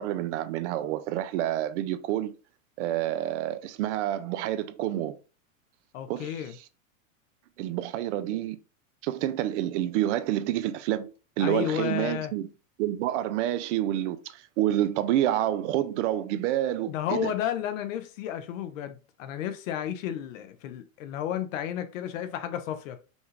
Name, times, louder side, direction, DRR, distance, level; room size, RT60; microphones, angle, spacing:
voice 1, 0.0-2.4 2.8-5.2 6.1-6.3 7.6-8.6 9.0-11.1 11.4-12.5 12.8-17.3, right 12 dB, 60° right, 0.6 m, -28 dB
voice 2, 5.9-6.5 11.4-12.3 16.9-23.0, left 10 dB, 70° left, 0.8 m, -32 dB
5.3 x 2.4 x 3.1 m
supercardioid pair, 130°, 41 cm